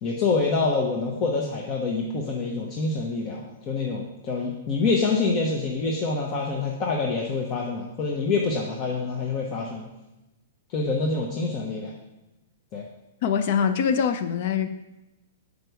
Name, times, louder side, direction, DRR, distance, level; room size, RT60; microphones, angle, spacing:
voice 1, 0.0-9.9 10.7-11.9 12.7-12.8, left 3 dB, 40° left, -1 dB, 1.0 m, -26 dB
voice 2, 13.2-14.7, left 7 dB, 55° left, 9 dB, 0.5 m, -23 dB
6.6 x 5.2 x 4.7 m, 0.99 s
hypercardioid pair, 130°, 0 cm